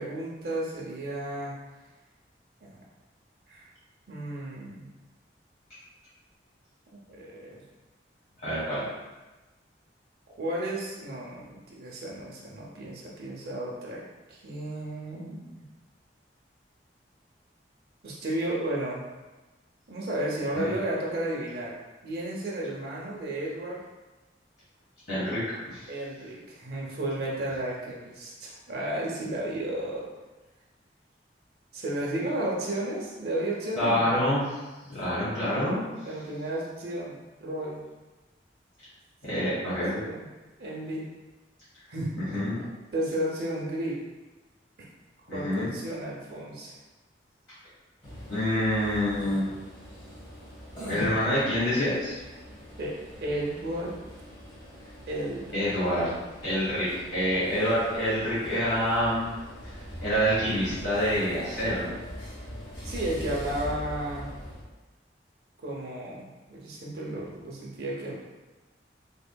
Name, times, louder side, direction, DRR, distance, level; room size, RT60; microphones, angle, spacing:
voice 1, 0.0-1.5 2.6-2.8 3.5-3.7 4.1-4.9 7.1-7.6 10.4-14.0 14.3-15.7 18.0-19.0 19.9-21.7 22.0-23.8 25.9-30.1 31.7-34.2 36.0-37.8 39.3-39.7 40.0-40.3 40.6-41.1 41.9-42.5 42.9-44.0 45.3-46.8 52.8-53.9 55.1-55.7 62.8-64.3 65.6-68.2, right 1 dB, 55° right, -4 dB, 0.6 m, -33 dB
voice 2, 8.4-8.8 20.5-20.7 25.1-25.9 33.7-34.5 34.8-35.8 39.2-40.0 42.3-42.6 45.3-45.7 48.3-49.5 50.9-52.2 55.5-56.1 56.4-59.3 59.6-61.9, equal, 65° left, -11 dB, 1.2 m, -27 dB
sound 1, 48.0-64.6, equal, 25° left, 1.0 m, -42 dB
3.6 x 3.5 x 2.2 m, 1.1 s
head